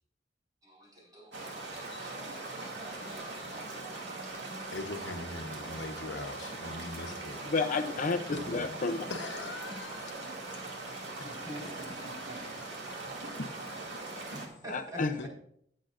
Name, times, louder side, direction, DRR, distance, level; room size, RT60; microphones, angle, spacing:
voice 1, 0.6-1.4 1.7-4.1 11.2-12.6 13.9-15.0, equal, 20° right, -2 dB, 5.1 m, -47 dB
sound 1, 1.3-14.5, right 2 dB, 80° right, 2.4 m, -41 dB
voice 2, 4.7-7.4 9.1-10.5 15.2-15.3, left 2 dB, 75° left, 5 dB, 1.1 m, -41 dB
voice 3, 7.4-9.1 13.4-13.5 14.7-15.1, left 3 dB, 45° left, 7 dB, 0.6 m, -31 dB
19.0 x 7.8 x 2.6 m, 0.67 s
head